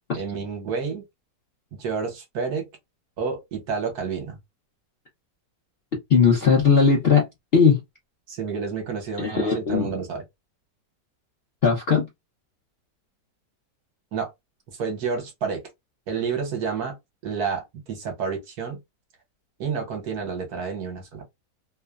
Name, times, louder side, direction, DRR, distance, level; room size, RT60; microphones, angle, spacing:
voice 1, 0.1-1.0 1.7-2.7 3.2-4.4 8.3-10.2 14.1-14.3 14.8-15.6 16.1-17.0 17.2-18.8 19.6-21.2, right 5 dB, 65° right, 1.3 m, -29 dB
voice 2, 6.1-7.3 7.5-7.8 9.2-9.9 11.6-12.1, left 5 dB, 60° left, 0.6 m, -18 dB
3.1 x 2.0 x 2.3 m
omnidirectional pair, 1.8 m